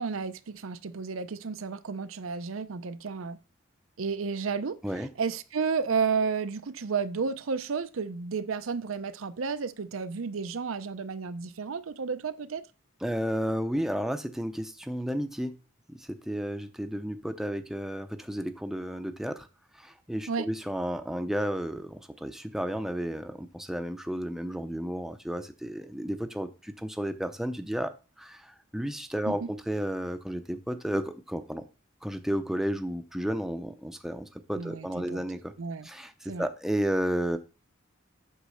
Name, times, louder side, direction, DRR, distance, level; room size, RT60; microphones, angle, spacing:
voice 1, 0.0-3.4 4.0-4.8 5.2-12.6 20.3-20.5 29.3-29.5 34.6-35.2 35.6-35.9 36.3-36.5, right 5 dB, 80° right, 0.6 m, -32 dB
voice 2, 13.0-15.6 15.9-19.5 19.7-31.7 32.0-35.5 35.8-37.4, equal, ahead, 0.6 m, -32 dB
8.2 x 3.2 x 6.4 m
head